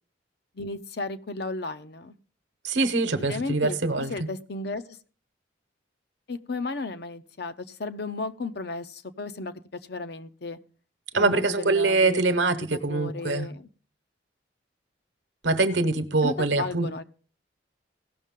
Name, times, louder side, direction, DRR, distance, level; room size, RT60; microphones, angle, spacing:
voice 1, 0.6-2.1 3.3-4.8 6.3-10.6 11.1-12.2 12.5-13.7 16.2-17.0, left 3 dB, 60° left, 0.7 m, -34 dB
voice 2, 2.6-4.3 11.1-13.5 15.4-16.9, right 3 dB, 70° right, 1.0 m, -24 dB
17.0 x 6.5 x 3.7 m
head